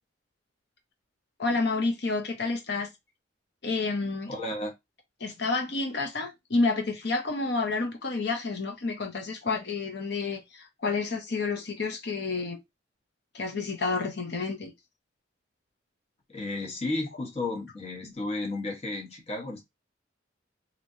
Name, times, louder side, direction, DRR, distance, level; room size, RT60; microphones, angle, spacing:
voice 1, 1.4-2.9 3.6-4.3 5.2-12.6 13.3-14.7, left 3 dB, 60° left, 0.8 m, -29 dB
voice 2, 4.3-4.7 16.3-19.6, left 2 dB, 35° left, 1.1 m, -33 dB
3.2 x 2.9 x 2.7 m
head